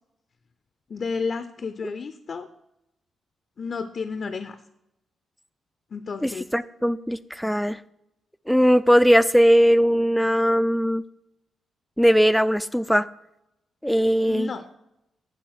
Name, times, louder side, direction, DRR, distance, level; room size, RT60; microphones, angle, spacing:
voice 1, 0.9-2.5 3.6-4.6 5.9-6.5 14.3-14.7, left 5 dB, 55° left, 9 dB, 0.5 m, -31 dB
voice 2, 6.2-7.8 8.5-11.0 12.0-13.1 13.8-14.5, equal, ahead, 15 dB, 0.4 m, -19 dB
9.9 x 3.4 x 6.2 m, 0.84 s
supercardioid pair, 55°, 0 cm